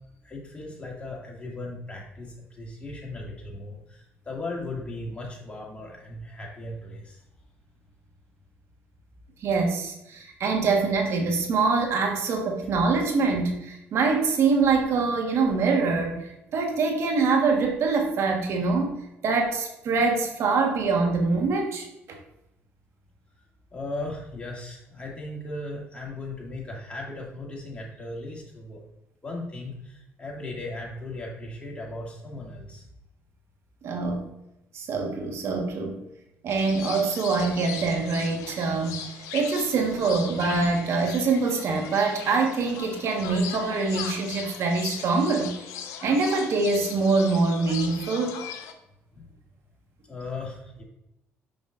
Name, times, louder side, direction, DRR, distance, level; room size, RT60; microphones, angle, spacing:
voice 1, 0.2-7.2 23.7-28.8 29.2-32.8 49.1-49.3 50.1-50.8, left 2 dB, 25° left, -2 dB, 2.3 m, -37 dB
voice 2, 9.4-16.2 16.5-22.2 33.8-34.2 34.7-36.0 36.4-39.0 39.3-45.6 46.0-48.5, right 4 dB, 65° right, 2 dB, 1.5 m, -24 dB
sound 1, 36.5-48.7, left 8 dB, 80° left, 0.7 m, -39 dB
7.2 x 5.3 x 2.6 m, 0.86 s
supercardioid pair, 80°, 5 cm